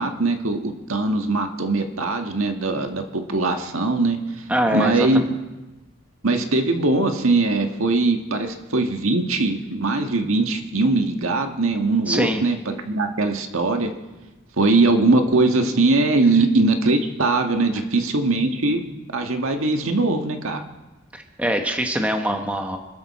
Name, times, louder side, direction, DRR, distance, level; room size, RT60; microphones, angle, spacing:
voice 1, 0.0-4.4 4.7-5.2 6.2-13.9 14.6-18.9 19.1-20.6, right 2 dB, 80° right, 4 dB, 1.6 m, -21 dB
voice 2, 4.5-4.9 12.1-12.4 21.1-22.8, equal, 5° right, 4 dB, 1.0 m, -23 dB
26.5 x 12.5 x 4.3 m, 1.1 s
head